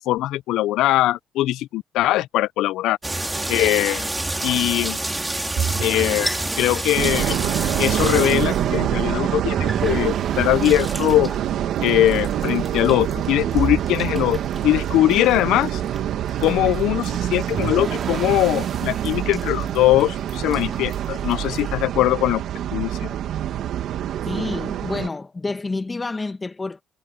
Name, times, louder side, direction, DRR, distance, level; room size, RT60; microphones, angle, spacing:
voice 1, 0.1-3.0 3.5-4.1 4.4-5.0 5.8-7.4 7.8-11.3 11.8-14.4 14.6-15.8 16.4-22.4 22.7-23.1, left 15 dB, 80° left, 0.3 m, -21 dB
sound 1, 3.0-21.8, right 2 dB, 10° right, 2.4 m, -32 dB
sound 2, 5.6-7.0 9.5-11.1 13.6-14.9 17.5-19.1, right 7 dB, 50° right, 4.9 m, -31 dB
sound 3, 7.0-25.1, right 11 dB, 70° right, 1.7 m, -26 dB
voice 2, 24.2-26.8, left 3 dB, 20° left, 1.5 m, -28 dB
cardioid pair, 105°, 0 cm